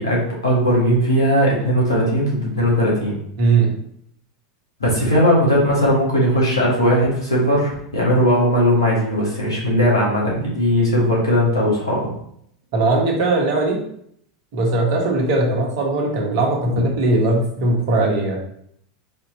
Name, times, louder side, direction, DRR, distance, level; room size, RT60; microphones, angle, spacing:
voice 1, 0.0-3.2 4.8-12.1, equal, 85° left, -4 dB, 1.7 m, -18 dB
voice 2, 3.4-3.7 12.7-13.8 14.5-18.4, right 2 dB, 55° right, 0 dB, 1.3 m, -19 dB
4.3 x 2.9 x 4.1 m, 0.69 s
figure-of-eight pair, 85°, 2 cm